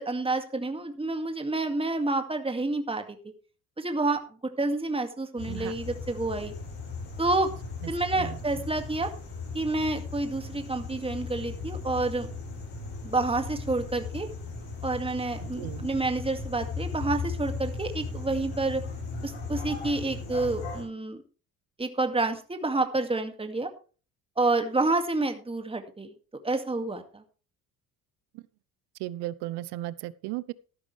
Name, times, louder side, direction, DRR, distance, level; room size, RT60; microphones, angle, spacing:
voice 1, 0.0-3.2 3.8-4.2 4.6-6.5 7.2-7.5 7.9-9.1 9.5-12.3 13.0-14.3 14.8-18.8 19.2-21.2 21.8-23.7 24.4-26.1 26.4-27.2, right 2 dB, 15° right, 6 dB, 2.1 m, -29 dB
sound 1, 5.4-20.8, left 4 dB, 70° left, 7.6 m, -37 dB
voice 2, 7.8-8.6 15.4-15.9 28.3-28.4 29.0-30.5, right 16 dB, 65° right, 19 dB, 0.8 m, -36 dB
13.5 x 11.5 x 3.3 m, 0.37 s
hypercardioid pair, 60°, 43 cm